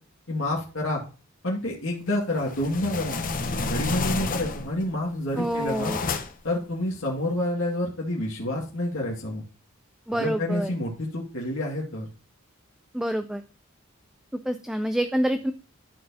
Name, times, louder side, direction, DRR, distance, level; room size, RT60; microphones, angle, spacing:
voice 1, 0.3-1.0 1.4-3.2 3.6-5.9 6.4-9.4 10.1-12.1, left 1 dB, 70° left, -3 dB, 2.1 m, -28 dB
sound 1, 2.3-4.8 5.3-6.5, left 3 dB, 40° left, 0.7 m, -30 dB
voice 2, 5.4-6.0 10.1-10.7 12.9-13.4 14.5-15.5, equal, 5° right, 8 dB, 0.3 m, -27 dB
12.5 x 4.4 x 2.8 m, 0.35 s
head